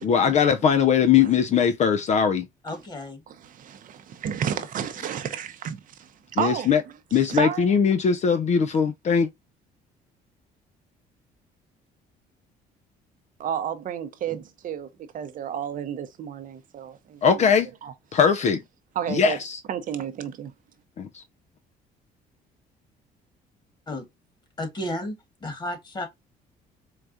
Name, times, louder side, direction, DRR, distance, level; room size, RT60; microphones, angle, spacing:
voice 1, 0.0-2.5 6.4-6.8 7.1-9.3 17.2-17.7 18.1-18.6 19.1-19.6 21.0-21.2, left 7 dB, 45° left, 0.5 m, -20 dB
voice 2, 2.6-3.2 4.8-4.9 23.9-24.1 24.6-25.1 25.4-26.1, left 1 dB, 25° left, 1.7 m, -32 dB
voice 3, 3.3-6.1 6.4-6.7 7.3-7.7 13.4-17.2 17.8-17.9 19.0-19.4 19.7-20.5, right 8 dB, 55° right, 0.7 m, -31 dB
4.6 x 2.3 x 2.5 m
cardioid pair, 110°, 17 cm